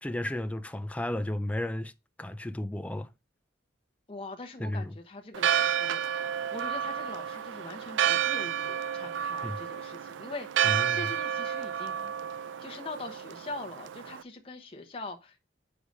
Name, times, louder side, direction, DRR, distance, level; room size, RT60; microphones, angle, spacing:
voice 1, 0.0-1.9 2.2-3.1 4.6-4.9 9.4-9.6 10.6-11.1, left 1 dB, 5° left, 0.3 m, -33 dB
voice 2, 4.1-15.4, left 2 dB, 30° left, 1.0 m, -43 dB
Church bell, 5.3-14.2, right 9 dB, 90° right, 0.4 m, -30 dB
6.2 x 5.0 x 5.2 m
head